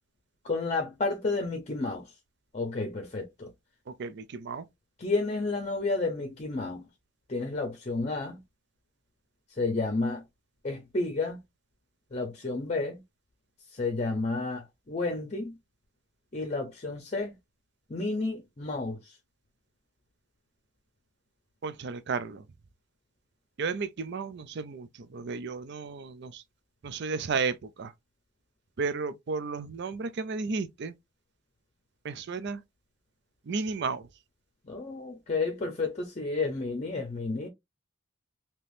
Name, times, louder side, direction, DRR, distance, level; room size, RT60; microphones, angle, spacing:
voice 1, 0.4-2.1 2.5-3.5 5.0-6.9 7.3-8.4 9.5-10.2 10.6-11.4 12.1-13.0 13.7-15.6 16.3-17.3 17.9-19.2 34.6-37.5, left 3 dB, 35° left, 0.7 m, -31 dB
voice 2, 4.0-4.7 21.6-22.4 23.6-26.4 26.8-27.9 28.8-30.9 32.0-32.6 33.5-34.1, right 4 dB, 60° right, 0.5 m, -33 dB
3.4 x 2.9 x 2.6 m
head